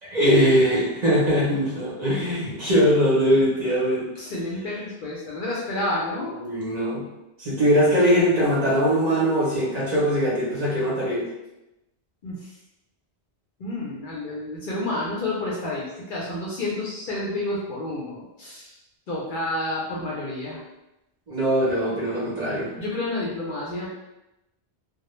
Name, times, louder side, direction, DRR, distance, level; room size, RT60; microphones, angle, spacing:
voice 1, 0.0-4.0 6.4-7.0 7.4-11.2 21.3-22.7, equal, 45° right, -7 dB, 0.7 m, -21 dB
voice 2, 4.2-6.3 12.2-12.5 13.6-18.8 19.1-20.6 22.8-23.9, left 2 dB, 60° left, -5 dB, 0.6 m, -30 dB
2.1 x 2.0 x 2.9 m, 0.94 s
omnidirectional pair, 1.1 m